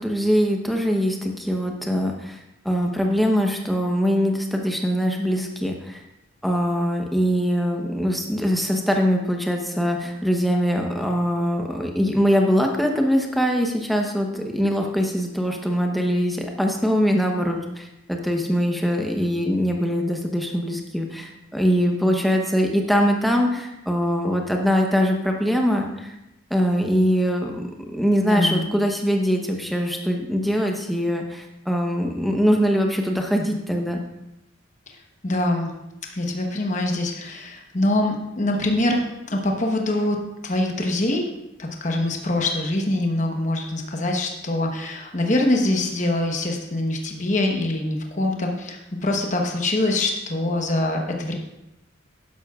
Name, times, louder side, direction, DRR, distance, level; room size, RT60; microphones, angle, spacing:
voice 1, 0.0-6.0 6.4-26.1 26.5-27.7 27.9-34.0, equal, ahead, 1 dB, 0.9 m, -22 dB
voice 2, 28.2-28.6 34.9-35.0 35.2-35.7 36.1-40.2 40.4-41.3 41.6-51.3, left 1 dB, 35° left, 1 dB, 1.1 m, -24 dB
12.0 x 10.5 x 2.4 m, 0.91 s
head